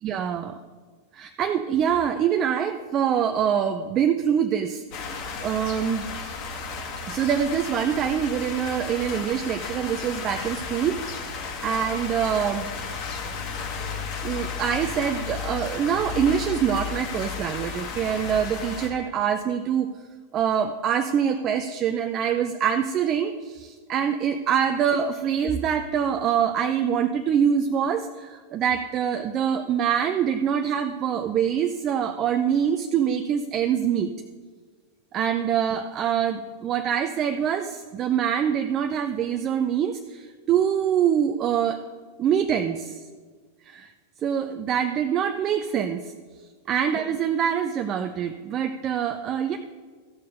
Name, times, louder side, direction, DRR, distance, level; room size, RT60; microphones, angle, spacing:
voice 1, 0.0-0.6 1.1-4.8 5.4-6.1 7.1-12.7 14.2-19.9 20.3-34.1 35.1-41.8 42.2-43.0 43.6-43.9 44.2-46.1 46.7-49.6, right 8 dB, 30° right, 6 dB, 0.5 m, -25 dB
sound 1, 4.9-18.9, left 5 dB, 45° left, 1.7 m, -33 dB
13.5 x 6.6 x 5.2 m, 1.5 s
figure-of-eight pair, 90°, 0 cm